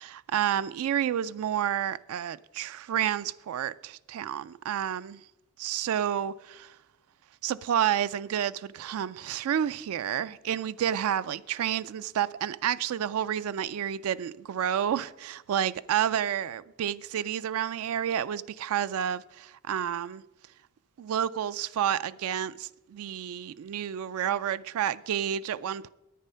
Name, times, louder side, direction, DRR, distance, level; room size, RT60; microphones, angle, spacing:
voice 1, 0.0-5.2 5.6-6.8 7.4-20.2 21.0-25.9, right 9 dB, 75° right, 0.3 m, -30 dB
10.0 x 9.1 x 5.5 m
head